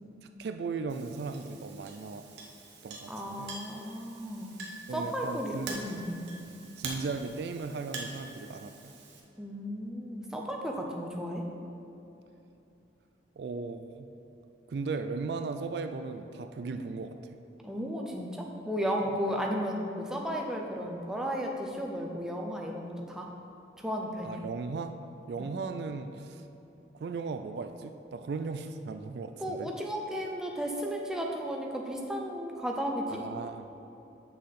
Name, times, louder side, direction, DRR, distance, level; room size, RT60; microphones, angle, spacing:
voice 1, 0.2-2.3 2.8-3.6 4.9-5.8 6.5-8.9 13.4-14.1 14.7-17.4 24.2-25.0 25.3-26.4 26.9-29.7 33.1-33.8, right 4 dB, 60° right, 8 dB, 0.3 m, -37 dB
Chink clink, 0.9-9.2, right 3 dB, 80° right, 1.1 m, -45 dB
voice 2, 3.1-4.6 4.9-6.2 9.4-11.4 17.6-23.3 23.8-24.4 25.4-25.6 29.4-33.2, equal, 5° right, 0 dB, 0.6 m, -34 dB
7.6 x 6.4 x 4.1 m, 2.9 s
head